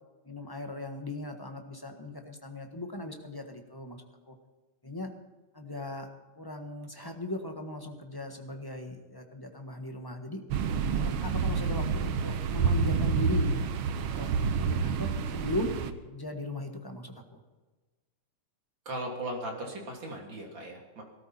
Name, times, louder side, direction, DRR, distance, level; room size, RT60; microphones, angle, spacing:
voice 1, 0.2-4.3 4.8-5.1 5.5-6.1 6.4-10.4 10.9-13.5 14.1-15.7 16.1-17.4, left 1 dB, 15° left, 4 dB, 1.2 m, -38 dB
sound 1, 10.5-15.9, right 5 dB, 75° right, 1.7 m, -28 dB
voice 2, 18.9-21.0, right 1 dB, 60° right, 0 dB, 3.7 m, -37 dB
18.5 x 13.0 x 4.4 m, 1.3 s
omnidirectional pair, 2.3 m